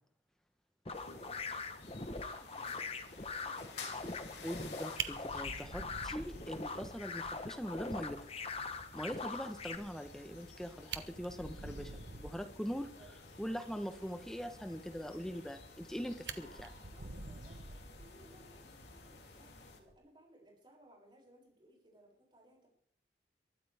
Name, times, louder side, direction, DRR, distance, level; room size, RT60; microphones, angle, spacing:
voice 1, 0.8-4.1 12.9-13.6 16.9-22.7, right 1 dB, 25° right, -2 dB, 7.3 m, -62 dB
sound 1, 0.9-19.8, left 3 dB, 80° left, 3.4 m, -53 dB
sound 2, 0.9-9.8, left 4 dB, 35° left, 1.3 m, -42 dB
voice 2, 4.4-8.2 8.9-12.9 13.4-16.7, equal, 5° left, 7 dB, 1.2 m, -42 dB
Fire, 4.6-4.7 5.0-6.9 7.2-7.3 7.7-7.8 8.2-8.3 10.4-10.5 10.8-12.5 15.4-15.9 16.2-18.4 19.7-20.0, right 5 dB, 80° right, 1.3 m, -45 dB
23.0 x 13.5 x 3.7 m, 0.62 s
head